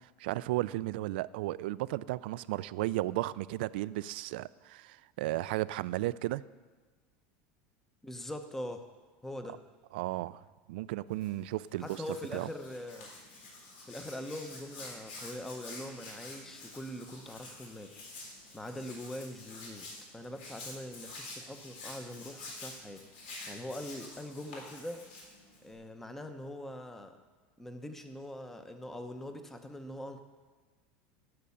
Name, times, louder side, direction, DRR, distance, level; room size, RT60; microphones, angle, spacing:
voice 1, 0.0-6.4 9.9-10.4 10.7-12.0 12.3-12.5, right 17 dB, 75° right, 18 dB, 0.4 m, -34 dB
voice 2, 8.0-8.8 9.2-9.6 11.8-13.1 13.8-17.9 18.5-19.9 20.1-23.0 23.5-25.0 25.6-27.2 27.6-30.2, left 1 dB, 5° left, 7 dB, 0.8 m, -42 dB
Hands, 11.1-25.7, left 2 dB, 80° left, 3.8 m, -48 dB
12.5 x 6.7 x 8.5 m, 1.4 s
supercardioid pair, 160°, 5 cm